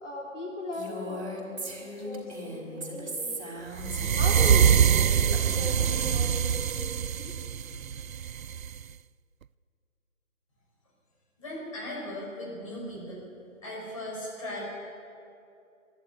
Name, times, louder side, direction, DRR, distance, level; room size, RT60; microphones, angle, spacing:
voice 1, 0.0-3.4 4.0-7.3, left 1 dB, 55° left, -2 dB, 4.1 m, -38 dB
Female speech woman speaking, 0.7-4.1 4.4-6.2, equal, 50° right, 5.1 m, -38 dB
sound 1, 3.8-8.8, right 8 dB, 75° right, 0.5 m, -24 dB
voice 2, 11.4-13.3 13.6-14.6, left 1 dB, 25° left, -4 dB, 5.5 m, -37 dB
24.0 x 12.0 x 9.8 m, 2.6 s
figure-of-eight pair, 170°, 42 cm